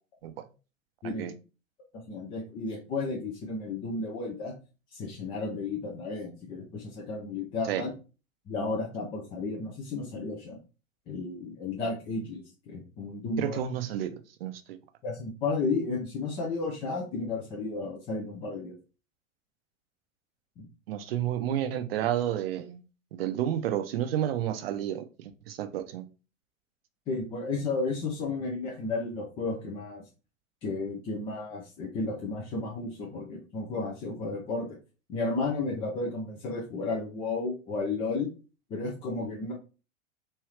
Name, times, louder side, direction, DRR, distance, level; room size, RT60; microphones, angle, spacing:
voice 1, 2.1-4.5 4.9-7.9 8.5-10.6 11.1-13.6 15.0-18.7 20.6-20.7 27.1-30.0 30.6-34.8 35.1-38.3 38.7-39.5, left 3 dB, 15° left, 0.4 m, -33 dB
voice 2, 13.4-14.8 20.9-22.8 23.1-26.1, right 11 dB, 50° right, 0.6 m, -31 dB
3.2 x 2.7 x 3.2 m
figure-of-eight pair, 95°, 40 cm